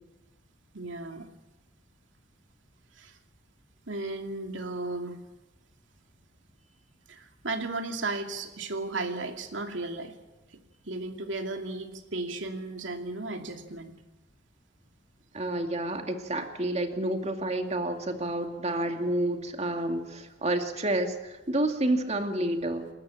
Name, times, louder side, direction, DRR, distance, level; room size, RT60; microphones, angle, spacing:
voice 1, 0.7-1.3 3.0-3.2 3.9-5.2 7.1-10.1 10.8-13.9, right 2 dB, 75° right, 4 dB, 2.6 m, -35 dB
voice 2, 15.3-22.9, right 1 dB, 35° right, 5 dB, 2.3 m, -29 dB
28.0 x 13.5 x 8.9 m, 1.1 s
head